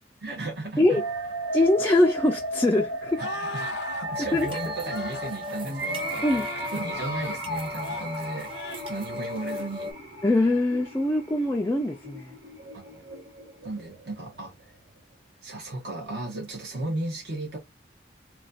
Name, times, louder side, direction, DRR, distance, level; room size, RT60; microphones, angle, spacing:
voice 1, 0.2-1.0 3.2-6.2 6.7-8.5 8.9-9.9 12.7-13.0 13.6-14.5 15.4-17.6, right 2 dB, 65° right, 1.1 m, -35 dB
sound 1, 0.9-14.9, right 2 dB, 85° right, 1.2 m, -35 dB
voice 2, 1.5-3.2 4.3-4.5 6.2-6.5 10.2-12.3, left 2 dB, 15° left, 0.3 m, -23 dB
sound 2, 3.2-4.1 4.8-5.3 5.8-7.4 7.8-8.1 8.5-8.9 9.3-9.6, left 4 dB, 70° left, 0.5 m, -38 dB
sound 3, 4.1-9.9, left 3 dB, 30° right, 0.8 m, -38 dB
3.1 x 2.3 x 3.9 m
head